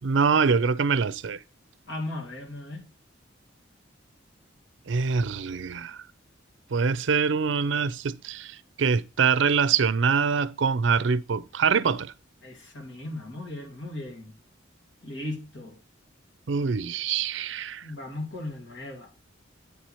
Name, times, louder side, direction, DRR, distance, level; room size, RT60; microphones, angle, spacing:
voice 1, 0.0-1.4 4.9-6.0 6.7-12.1 16.5-17.9, right 5 dB, 70° right, 0.5 m, -24 dB
voice 2, 1.9-2.9 12.4-14.3 15.0-15.8 17.8-19.1, left 1 dB, 70° left, 2.5 m, -37 dB
8.7 x 4.6 x 4.3 m
head